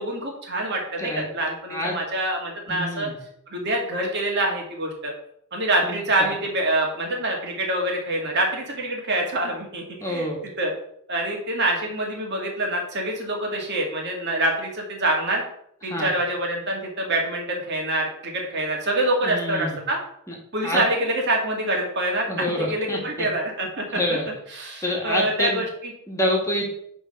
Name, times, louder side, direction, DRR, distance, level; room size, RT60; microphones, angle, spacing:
voice 1, 0.0-3.1 3.5-5.1 5.5-10.3 10.6-10.7 11.1-15.4 15.8-20.0 20.5-22.3 22.6-24.0 24.5-25.9, right 1 dB, 55° right, 0 dB, 2.2 m, -26 dB
voice 2, 2.7-3.1 5.8-6.3 10.0-10.4 15.8-16.1 19.2-19.8 20.3-20.4 20.6-20.8 22.3-23.3 23.9-24.3 24.8-25.6 26.1-26.7, left 1 dB, 15° left, -1 dB, 1.7 m, -27 dB
10.0 x 3.8 x 5.8 m, 0.69 s
head